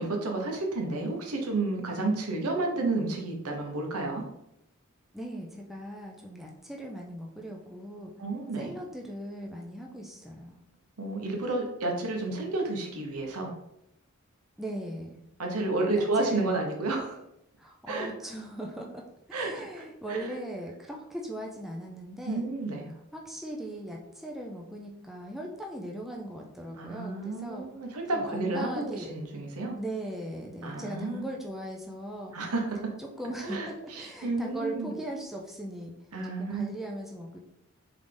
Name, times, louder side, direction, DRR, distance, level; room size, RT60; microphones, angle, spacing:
voice 1, 0.0-4.2 8.2-8.7 11.0-13.5 15.4-17.2 17.9-18.1 19.3-19.8 20.1-20.3 22.3-22.9 26.8-29.7 30.6-31.3 32.3-32.9 33.4-33.7 33.9-34.9 36.1-36.7, right 2 dB, 90° right, 2 dB, 0.9 m, -31 dB
voice 2, 5.1-8.1 8.6-10.6 14.6-15.2 15.9-16.5 17.6-19.1 19.4-22.5 23.1-27.7 28.1-29.1 29.8-32.3 33.0-35.9 36.4-37.4, right 1 dB, ahead, -1 dB, 0.4 m, -39 dB
3.9 x 3.5 x 3.4 m, 0.83 s
head